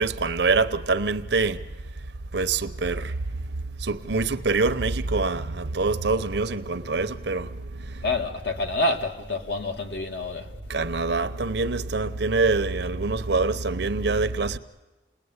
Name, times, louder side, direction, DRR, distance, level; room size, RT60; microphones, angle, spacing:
voice 1, 0.0-1.7 2.3-3.2 3.8-8.0 10.7-14.6, right 3 dB, 65° right, 0.9 m, -25 dB
voice 2, 8.0-10.6, left 2 dB, 60° left, 2.0 m, -27 dB
28.5 x 20.0 x 9.7 m
head